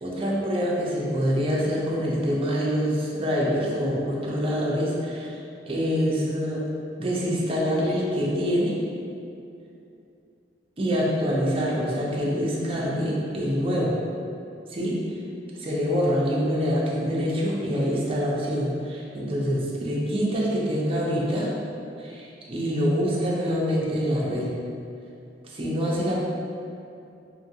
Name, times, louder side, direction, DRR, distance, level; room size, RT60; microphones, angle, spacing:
voice 1, 0.0-5.3 5.7-6.6 7.0-8.8 10.8-14.0 14.7-15.0 15.6-21.5 22.0-24.5 25.5-26.2, equal, 30° right, -5 dB, 0.4 m, -25 dB
2.9 x 2.4 x 2.7 m, 2.6 s
head